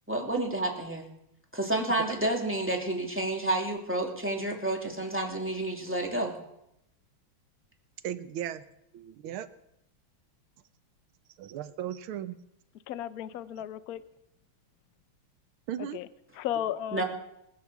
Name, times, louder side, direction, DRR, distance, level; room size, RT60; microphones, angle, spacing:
voice 1, 0.1-1.1 1.5-6.4 16.9-17.0, right 1 dB, 5° right, 0 dB, 2.6 m, -30 dB
voice 2, 8.0-8.6 8.9-9.5 11.4-12.4 15.7-16.0, right 10 dB, 85° right, 13 dB, 1.7 m, -36 dB
voice 3, 12.9-14.0 15.9-16.1 16.4-17.0, left 11 dB, 65° left, 13 dB, 1.0 m, -34 dB
20.5 x 7.8 x 7.1 m, 0.81 s
omnidirectional pair, 2.3 m